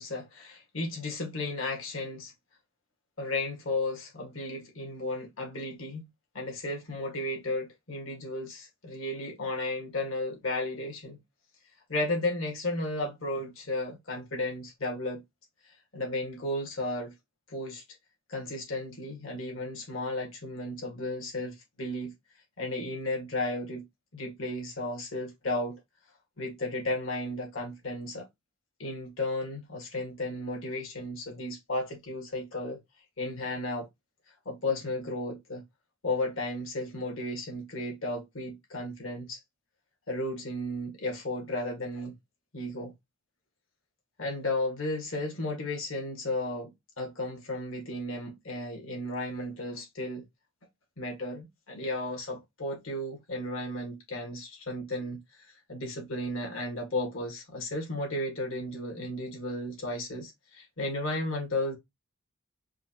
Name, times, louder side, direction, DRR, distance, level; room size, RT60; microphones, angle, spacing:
voice 1, 0.0-2.3 3.2-6.1 6.3-11.2 11.9-15.2 15.9-17.1 17.5-17.8 18.3-22.1 22.6-23.9 24.1-25.8 26.4-28.3 28.8-32.8 33.2-33.9 34.5-35.6 36.0-39.4 40.1-42.1 42.5-42.9 44.2-50.2 51.0-61.7, left 1 dB, 75° left, 1.8 m, -34 dB
4.6 x 2.5 x 2.9 m
head